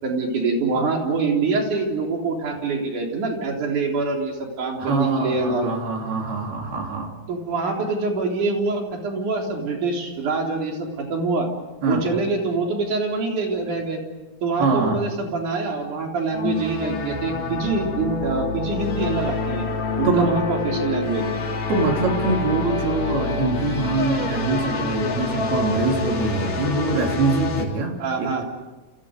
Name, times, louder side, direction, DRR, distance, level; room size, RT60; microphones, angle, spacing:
voice 1, 0.0-5.7 7.3-11.5 11.9-14.0 14.4-19.7 20.0-21.3 28.0-28.4, right 3 dB, 55° right, 1 dB, 4.9 m, -25 dB
voice 2, 4.8-7.1 11.8-12.1 14.6-15.0 20.1-20.3 21.7-27.9 28.2-28.4, right 3 dB, 85° right, 1 dB, 5.2 m, -23 dB
sound 1, 16.3-27.7, left 4 dB, 75° left, 5.2 m, -27 dB
30.0 x 29.5 x 5.2 m, 1.2 s
omnidirectional pair, 4.3 m